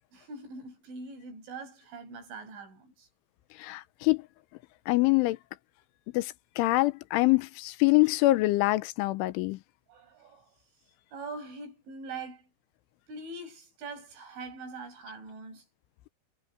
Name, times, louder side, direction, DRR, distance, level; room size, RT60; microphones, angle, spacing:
voice 1, 0.1-3.1 9.9-10.5 11.1-12.5 13.1-15.7, right 3 dB, 80° right, 9.2 m, -43 dB
voice 2, 3.6-4.2 4.9-5.4 6.1-9.6, left 20 dB, 90° left, 3.3 m, -25 dB
omnidirectional pair, 5.5 m